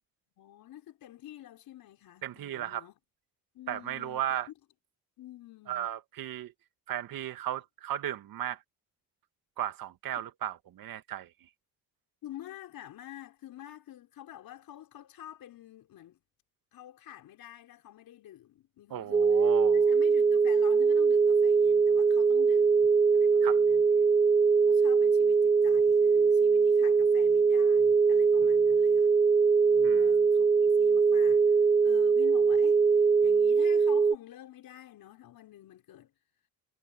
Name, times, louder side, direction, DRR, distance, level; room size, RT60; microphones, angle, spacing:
voice 1, 0.4-2.9 3.5-4.4 5.2-5.9 12.2-16.2 16.7-19.4 19.7-24.1 24.6-29.1 29.6-31.6 31.8-32.8 33.2-36.1, left 12 dB, 75° left, 4.7 m, -48 dB
voice 2, 2.2-2.8 3.7-4.5 5.7-6.5 6.9-8.6 9.6-11.3 18.9-19.9 23.4-23.6 29.8-30.2, right 11 dB, 70° right, 2.0 m, -35 dB
sound 1, 19.1-34.1, right 5 dB, 15° right, 0.3 m, -22 dB
cardioid pair, 95°, 36 cm